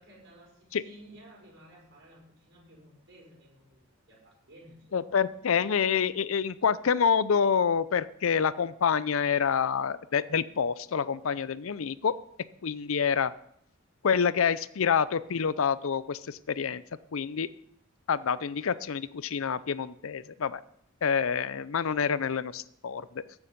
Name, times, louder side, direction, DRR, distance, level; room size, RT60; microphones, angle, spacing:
voice 1, 0.0-5.4, right 1 dB, 60° right, -4 dB, 5.6 m, -55 dB
voice 2, 4.9-12.1 12.6-13.3 14.0-16.8 17.1-17.5 18.1-20.6 21.0-23.2, left 6 dB, 75° left, 17 dB, 0.5 m, -27 dB
15.0 x 7.2 x 5.2 m, 0.74 s
head